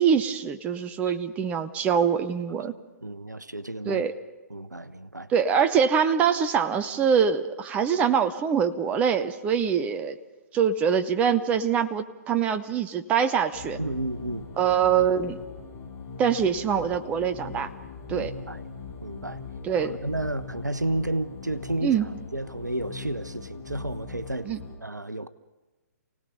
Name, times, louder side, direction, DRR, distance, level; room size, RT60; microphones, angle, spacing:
voice 1, 0.0-2.7 3.9-4.1 5.3-10.2 10.5-13.8 14.6-15.4 16.2-17.7 18.1-18.3 19.6-20.0 21.8-22.1 24.4-24.6, right 7 dB, 15° right, 0.7 m, -24 dB
voice 2, 3.0-4.0 4.5-5.3 13.8-14.4 18.1-18.7 19.0-19.4 19.8-24.5 24.8-25.3, right 1 dB, 85° right, 0.9 m, -32 dB
sound 1, 13.5-24.8, left 5 dB, 25° left, 7.8 m, -40 dB
28.5 x 18.0 x 5.5 m
figure-of-eight pair, 125°, 9 cm